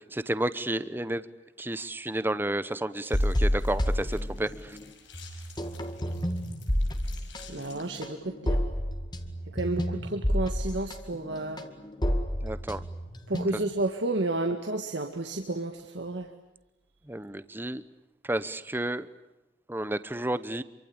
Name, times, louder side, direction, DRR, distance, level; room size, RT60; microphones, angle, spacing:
voice 1, 0.1-1.3 1.6-4.8 12.4-12.8 17.1-17.8 18.2-19.1 19.7-20.6, right 1 dB, 10° right, 14 dB, 0.9 m, -31 dB
sound 1, 3.0-8.1, left 7 dB, 85° left, 5.8 m, -53 dB
sound 2, 3.1-4.8 5.1-13.8, equal, 25° left, 2.0 m, -29 dB
voice 2, 7.5-8.6 9.5-11.6 13.3-16.3, right 2 dB, 75° right, 4 dB, 2.0 m, -31 dB
27.0 x 24.5 x 8.7 m, 1.0 s
head